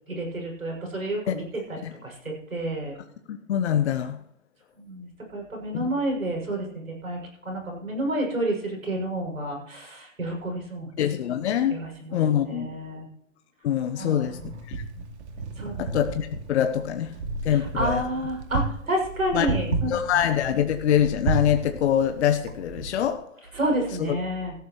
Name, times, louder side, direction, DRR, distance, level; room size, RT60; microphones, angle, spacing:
voice 1, 0.1-3.0 4.7-11.1 11.7-12.2 12.4-13.1 14.0-14.5 15.6-15.7 17.5-20.2 23.5-24.5, right 1 dB, 90° right, 0 dB, 6.6 m, -30 dB
voice 2, 3.3-4.2 5.7-5.9 11.0-11.8 12.1-12.7 13.6-14.4 14.7-14.8 15.8-17.1 17.4-18.0 19.3-19.5 19.9-23.2 24.0-24.2, left 10 dB, 55° left, 8 dB, 1.1 m, -24 dB
Wind, 14.2-23.1, right 4 dB, 55° right, 2.4 m, -33 dB
18.0 x 14.0 x 3.1 m, 0.76 s
figure-of-eight pair, 125°, 40 cm